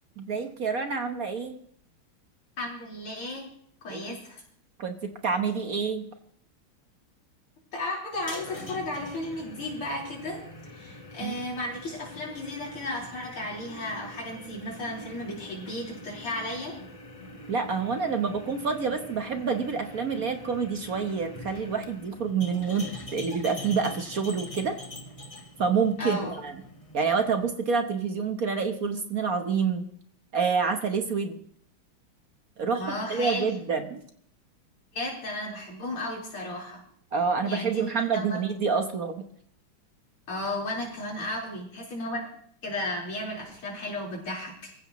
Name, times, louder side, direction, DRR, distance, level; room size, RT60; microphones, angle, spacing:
voice 1, 0.2-1.6 3.9-4.0 4.8-6.0 11.2-11.3 17.5-24.8 25.6-26.5 26.9-29.9 30.3-31.4 32.6-34.0 37.1-39.2, right 5 dB, 50° right, 6 dB, 1.4 m, -28 dB
voice 2, 2.6-3.5 3.8-4.4 7.7-16.8 26.0-26.4 32.7-33.5 34.9-36.8 37.5-38.4 40.3-42.3 42.6-44.8, left 1 dB, 90° left, -3 dB, 5.3 m, -34 dB
sound 1, 8.1-27.5, left 1 dB, 20° left, 1.2 m, -44 dB
25.5 x 15.0 x 3.1 m, 0.65 s
omnidirectional pair, 2.3 m